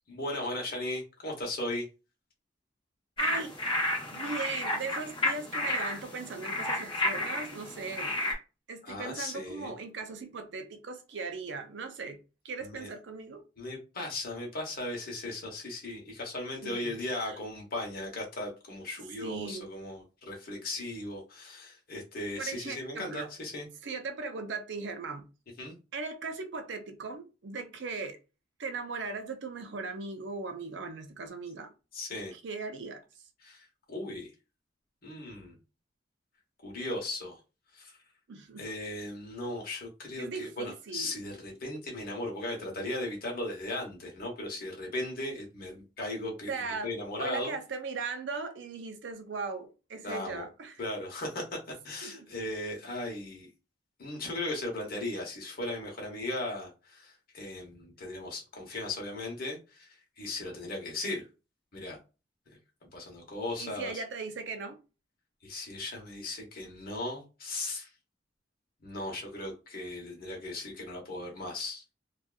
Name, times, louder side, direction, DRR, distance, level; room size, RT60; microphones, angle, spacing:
voice 1, 0.1-1.8 8.8-9.7 12.6-12.9 13.6-23.7 25.6-25.8 31.9-32.3 33.4-34.3 35.0-35.5 36.6-37.4 37.7-38.0 38.6-46.5 46.8-47.5 50.0-50.5 50.8-51.4 51.8-53.5 54.0-59.9 60.2-61.2 61.7-62.0 62.9-63.9 65.4-67.9 68.8-71.8, left 2 dB, 55° left, 1.0 m, -37 dB
sound 1, 3.2-8.3, left 1 dB, 25° left, 0.8 m, -32 dB
voice 2, 3.2-3.5 4.1-8.2 8.7-12.2 12.4-13.4 16.6-17.4 19.2-19.7 22.4-23.3 23.8-25.3 25.9-28.2 28.6-31.7 32.3-33.0 38.3-38.6 40.2-41.3 46.5-46.9 47.2-50.8 52.0-52.3 63.6-64.8, right 4 dB, 70° right, 0.5 m, -38 dB
2.6 x 2.4 x 2.3 m
head